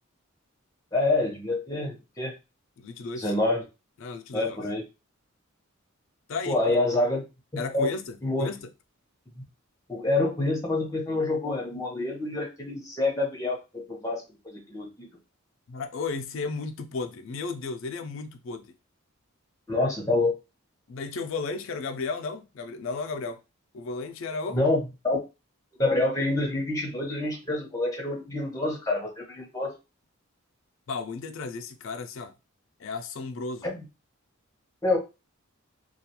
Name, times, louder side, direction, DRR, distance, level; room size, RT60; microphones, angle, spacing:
voice 1, 0.9-2.3 3.2-3.6 4.3-4.8 6.5-7.2 7.7-7.9 8.2-8.5 9.9-15.1 19.7-20.4 24.5-24.8 25.0-25.2 25.8-29.7 33.6-33.8 34.8-35.0, left 2 dB, 15° left, 0.7 m, -27 dB
voice 2, 2.8-3.3 4.0-4.7 6.3-6.8 7.6-8.7 15.7-18.7 20.9-23.4 23.7-24.6 30.9-32.3 32.8-33.7, left 4 dB, 60° left, 0.4 m, -34 dB
2.3 x 2.2 x 2.8 m
head